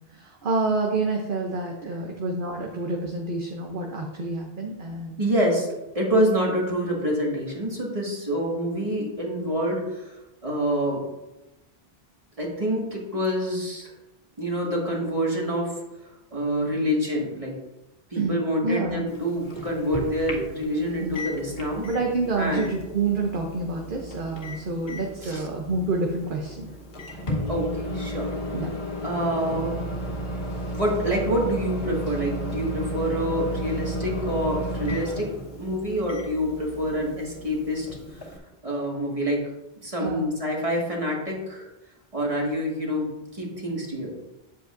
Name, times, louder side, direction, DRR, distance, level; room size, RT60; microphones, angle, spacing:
voice 1, 0.1-5.2 18.1-19.0 20.0-20.5 20.9-21.2 21.8-26.7 28.5-28.7 40.0-40.3, right 3 dB, 55° right, 1 dB, 0.9 m, -28 dB
voice 2, 5.2-5.7 5.9-11.0 12.4-13.9 14.4-15.8 16.3-17.6 18.1-21.8 22.4-22.6 25.2-25.5 27.5-28.3 29.0-30.0 30.7-35.3 35.6-38.3 38.6-39.4 39.8-41.7 42.1-44.2, equal, 35° right, -3 dB, 2.0 m, -27 dB
Microwave oven, 19.1-38.4, equal, 70° left, 1.6 m, -34 dB
9.5 x 7.6 x 2.6 m, 0.99 s
omnidirectional pair, 1.1 m